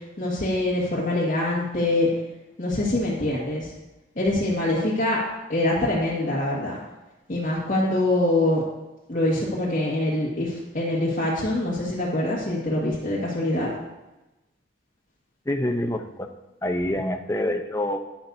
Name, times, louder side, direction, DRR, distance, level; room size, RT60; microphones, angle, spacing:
voice 1, 0.2-2.1 2.6-3.7 4.2-5.2 5.5-6.8 7.3-8.6 9.1-13.7, left 1 dB, 40° left, -7 dB, 1.7 m, -24 dB
voice 2, 15.5-16.3 16.6-18.0, left 1 dB, 15° left, 4 dB, 0.6 m, -26 dB
11.5 x 9.6 x 2.7 m, 1.0 s
head